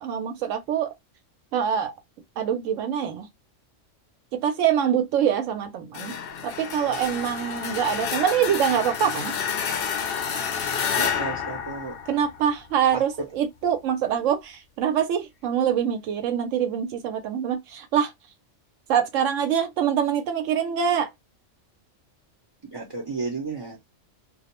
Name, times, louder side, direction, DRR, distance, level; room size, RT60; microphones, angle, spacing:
voice 1, 0.0-0.9 1.5-1.9 2.4-3.3 4.3-6.1 6.4-9.3 12.1-18.1 18.9-21.1, right 8 dB, 85° right, 0.9 m, -24 dB
sound 1, 5.9-12.7, left 7 dB, 60° left, 0.7 m, -29 dB
voice 2, 11.0-11.9 12.9-13.0 22.7-23.8, right 4 dB, 30° right, 0.5 m, -32 dB
2.4 x 2.0 x 2.9 m
omnidirectional pair, 1.3 m